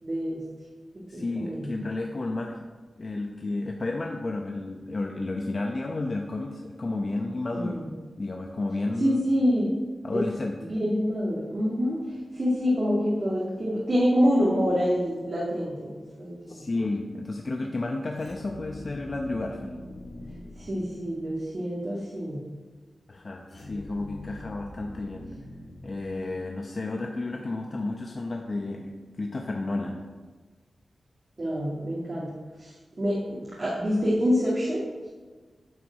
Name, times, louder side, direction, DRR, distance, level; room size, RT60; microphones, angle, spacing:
voice 1, 0.0-0.4 1.1-1.7 7.5-7.8 9.0-9.7 10.1-10.2 10.7-16.7 20.6-22.4 31.4-34.9, equal, 45° right, -6 dB, 2.1 m, -26 dB
voice 2, 1.1-2.6 3.0-7.8 8.2-9.2 10.0-10.6 16.5-19.7 23.1-25.3 25.8-30.0, left 2 dB, 45° left, 1 dB, 0.8 m, -32 dB
sound 1, 18.2-21.5 23.5-26.8, left 1 dB, 60° left, 2.0 m, -44 dB
9.2 x 4.8 x 6.2 m, 1.3 s
cardioid pair, 70°, 0 cm